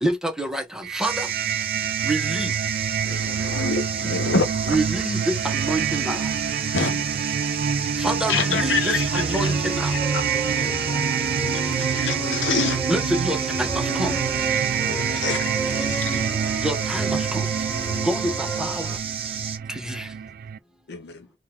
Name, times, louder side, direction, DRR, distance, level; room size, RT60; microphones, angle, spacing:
voice 1, 0.0-1.3 2.0-2.6 4.7-6.3 8.0-10.0 12.9-14.2 16.6-17.5 18.0-18.9 19.7-20.1, right 1 dB, 5° right, 0.9 m, -27 dB
sound 1, 0.8-20.6, right 7 dB, 50° right, 0.3 m, -27 dB
sound 2, 1.0-19.6, right 7 dB, 30° right, 0.8 m, -32 dB
voice 2, 3.0-4.8 6.7-7.1 8.3-9.6 9.9-10.3 10.6-11.2 11.5-12.8 15.1-16.6 17.1-17.2, left 4 dB, 75° left, 0.9 m, -28 dB
sound 3, 8.2-19.0, right 2 dB, 20° left, 1.4 m, -33 dB
voice 3, 10.3-10.8 14.6-15.2 20.9-21.3, left 3 dB, 60° left, 0.6 m, -38 dB
3.7 x 2.4 x 4.4 m
head